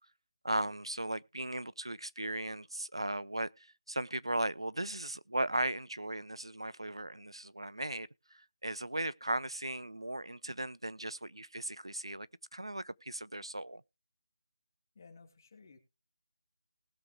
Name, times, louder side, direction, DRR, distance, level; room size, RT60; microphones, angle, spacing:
voice 1, 0.4-12.3 12.5-13.8, right 1 dB, 90° right, 0.6 m, -37 dB
voice 2, 14.9-15.8, left 4 dB, 40° left, 2.7 m, -56 dB
19.5 x 6.9 x 3.2 m
figure-of-eight pair, 160°, 3 cm